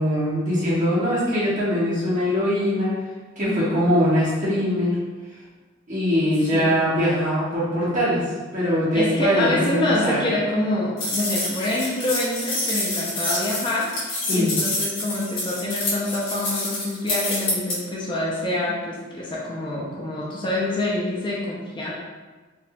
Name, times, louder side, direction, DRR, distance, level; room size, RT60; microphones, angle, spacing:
voice 1, 0.0-2.9 3.4-5.0 5.9-8.2 8.5-10.3 14.2-14.5, equal, 40° right, -10 dB, 1.4 m, -22 dB
voice 2, 3.4-3.9 6.5-6.8 8.9-21.9, left 1 dB, 25° left, -5 dB, 0.5 m, -26 dB
sound 1, 11.0-17.8, left 2 dB, 65° left, 1.2 m, -27 dB
4.0 x 2.7 x 2.2 m, 1.3 s
head